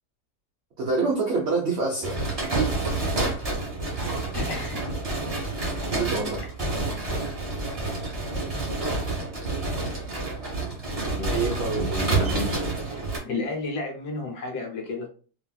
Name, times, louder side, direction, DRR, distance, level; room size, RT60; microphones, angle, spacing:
voice 1, 0.8-2.2 2.5-2.8 5.9-6.4 11.3-11.8, right 3 dB, 70° right, -1 dB, 0.6 m, -26 dB
sound 1, 2.0-13.2, right 2 dB, 30° right, 0.7 m, -28 dB
voice 2, 4.3-4.8 6.1-6.3 11.2-11.3 11.8-12.5 13.2-15.1, left 2 dB, 70° left, 1 dB, 1.4 m, -32 dB
3.2 x 2.5 x 2.2 m, 0.39 s
omnidirectional pair, 1.9 m